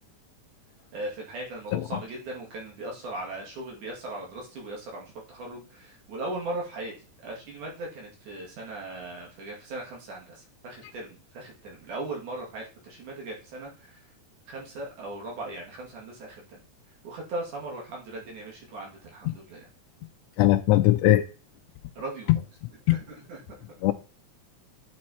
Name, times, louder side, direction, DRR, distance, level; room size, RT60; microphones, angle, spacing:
voice 1, 0.9-6.9 7.2-14.0 14.5-16.6 17.0-19.7 22.0-22.3 22.9-23.4, right 2 dB, 80° right, 3.8 m, -38 dB
voice 2, 20.4-21.2 22.9-23.0 23.8-23.9, left 15 dB, 80° left, 1.5 m, -19 dB
8.6 x 4.5 x 4.4 m
omnidirectional pair, 3.5 m